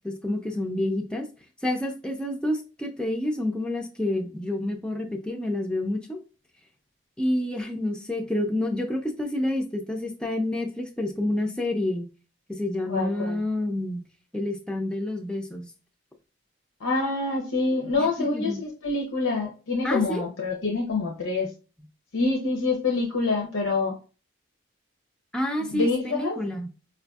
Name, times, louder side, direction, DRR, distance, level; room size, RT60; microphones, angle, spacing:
voice 1, 0.0-1.3 1.6-6.2 7.2-12.1 12.5-14.0 14.3-15.7 18.0-18.6 19.8-20.2 25.3-26.7, left 1 dB, 5° left, 2 dB, 0.3 m, -28 dB
voice 2, 12.9-13.4 16.8-21.5 22.1-24.0 25.6-26.4, left 3 dB, 80° left, 0 dB, 0.6 m, -26 dB
4.6 x 2.5 x 2.3 m, 0.35 s
head